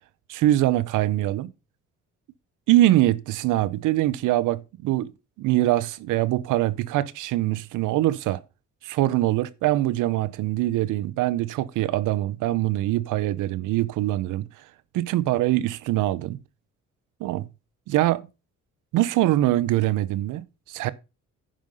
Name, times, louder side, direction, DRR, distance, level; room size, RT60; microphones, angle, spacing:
voice 1, 0.3-1.5 2.7-5.1 5.4-8.4 8.8-14.5 14.9-16.4 17.2-17.5 17.9-18.2 18.9-20.9, right 15 dB, 90° right, 0.7 m, -23 dB
10.0 x 5.5 x 5.4 m
cardioid pair, 90°, 30 cm